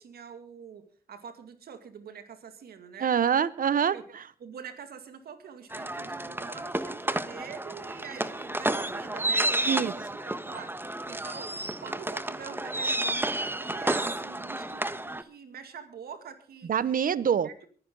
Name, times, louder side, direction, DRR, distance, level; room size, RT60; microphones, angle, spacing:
voice 1, 0.0-3.1 3.9-4.0 4.4-17.0 17.4-17.7, right 7 dB, 80° right, 2.3 m, -45 dB
voice 2, 3.0-4.2 9.7-9.9 16.7-17.5, right 8 dB, 60° right, 0.9 m, -25 dB
sound 1, 5.7-15.2, right 1 dB, 15° right, 1.3 m, -31 dB
23.5 x 10.5 x 3.8 m
supercardioid pair, 50°, 16 cm